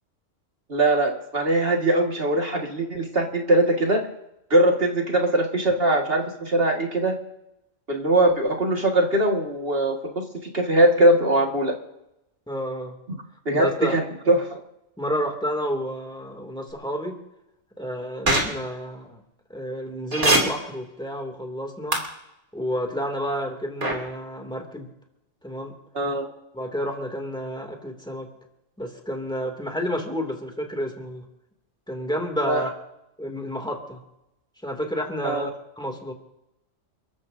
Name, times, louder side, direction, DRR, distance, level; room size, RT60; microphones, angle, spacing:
voice 1, 0.7-4.0 4.5-7.1 7.9-10.3 10.5-11.8 13.5-14.6 25.9-26.3 32.4-32.6 35.2-35.5, right 1 dB, 50° right, 1 dB, 2.1 m, -21 dB
voice 2, 12.5-12.9 13.6-14.0 15.0-17.2 17.8-19.2 19.5-22.0 22.5-24.9 25.4-25.7 26.5-28.3 28.8-31.2 31.9-32.7 33.2-34.0 34.6-35.5 35.8-36.1, equal, 5° left, 2 dB, 2.5 m, -30 dB
sound 1, 18.3-18.4 20.1-20.4 21.9-22.0 23.8-23.9, right 2 dB, 65° right, 3.3 m, -19 dB
30.0 x 13.5 x 2.7 m, 0.87 s
omnidirectional pair, 1.3 m